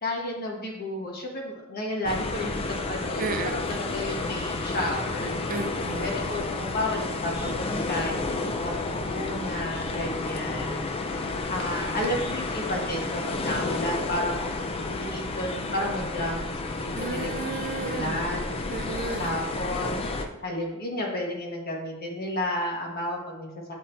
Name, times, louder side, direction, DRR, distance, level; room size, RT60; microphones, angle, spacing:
voice 1, 0.0-3.4 3.7-5.6 6.0-11.2 11.5-14.6 14.9-17.5 17.8-18.5 19.2-20.0 20.4-23.5, left 1 dB, 45° left, -1 dB, 1.2 m, -32 dB
sound 1, 2.1-20.3, left 3 dB, 25° left, 0.4 m, -31 dB
voice 2, 3.2-3.8 5.5-6.1 16.9-18.2 18.7-19.3, right 4 dB, 40° right, 7 dB, 0.5 m, -33 dB
8.3 x 2.8 x 4.3 m, 0.93 s
head